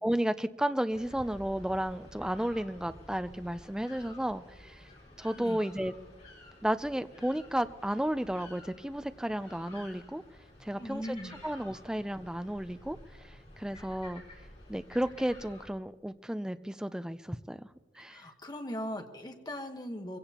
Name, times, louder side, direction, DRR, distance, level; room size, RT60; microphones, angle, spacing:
voice 1, 0.0-4.9 5.2-5.9 6.6-10.2 10.6-11.2 11.4-14.2 14.7-17.7 18.0-18.2, right 1 dB, 5° right, 11 dB, 0.4 m, -33 dB
sound 1, 0.9-15.7, left 1 dB, 40° left, 4.6 m, -52 dB
voice 2, 10.7-11.3 18.1-20.2, equal, 20° left, 5 dB, 1.2 m, -39 dB
23.0 x 16.5 x 2.9 m, 1.3 s
head